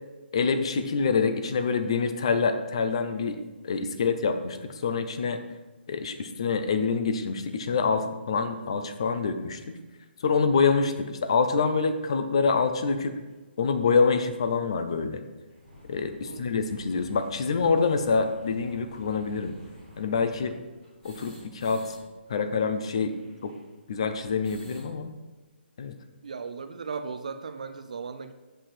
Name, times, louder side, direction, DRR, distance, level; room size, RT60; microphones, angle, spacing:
voice 1, 0.3-5.4 5.9-9.6 10.2-13.2 13.6-15.2 15.9-19.5 20.0-20.6 21.0-22.0 22.3-23.1 23.4-23.5 23.9-25.1 25.8-25.9, left 5 dB, 30° left, 9 dB, 0.5 m, -26 dB
sound 1, 13.3-13.4 14.1-14.2 14.4-14.5 14.8-14.9 15.3-22.0 22.2-22.3 22.5-24.9, left 1 dB, 10° left, 2.0 m, -51 dB
voice 2, 16.2-16.6 26.2-28.3, right 5 dB, 40° right, 9 dB, 0.4 m, -37 dB
7.7 x 7.5 x 4.3 m, 1.2 s
hypercardioid pair, 180°, 6 cm